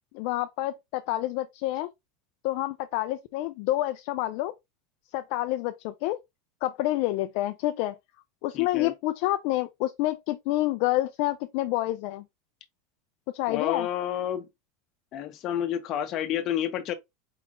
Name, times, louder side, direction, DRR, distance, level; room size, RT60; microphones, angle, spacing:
voice 1, 0.1-1.9 2.4-4.5 5.1-6.2 6.6-7.9 8.4-12.2 13.3-13.9, left 16 dB, 65° left, 0.5 m, -28 dB
voice 2, 8.5-8.9 13.5-14.5 15.1-16.9, left 10 dB, 45° left, 1.0 m, -30 dB
4.8 x 3.6 x 2.5 m
supercardioid pair, 115°, 0 cm